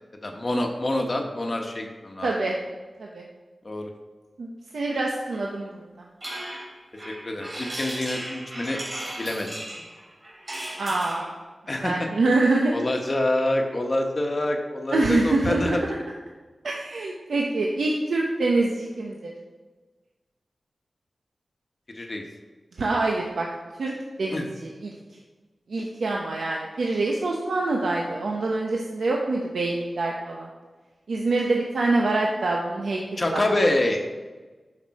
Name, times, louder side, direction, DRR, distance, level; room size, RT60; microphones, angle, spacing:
voice 1, 0.2-2.3 3.6-3.9 6.9-8.8 9.2-9.6 11.7-12.1 12.7-15.8 21.9-22.2 24.3-24.5 33.2-34.0, left 1 dB, 35° left, 3 dB, 1.0 m, -26 dB
voice 2, 2.2-2.6 3.0-3.2 4.4-5.8 10.8-11.3 11.8-12.8 14.9-15.8 16.6-19.3 22.8-23.5 23.8-23.9 24.2-24.9 25.7-30.5 31.1-33.0 33.3-33.5, right 2 dB, 90° right, -2 dB, 0.8 m, -25 dB
sound 1, 6.2-11.3, right 1 dB, 35° right, 3.0 m, -36 dB
11.0 x 5.3 x 4.1 m, 1.3 s
wide cardioid pair, 100°, 0 cm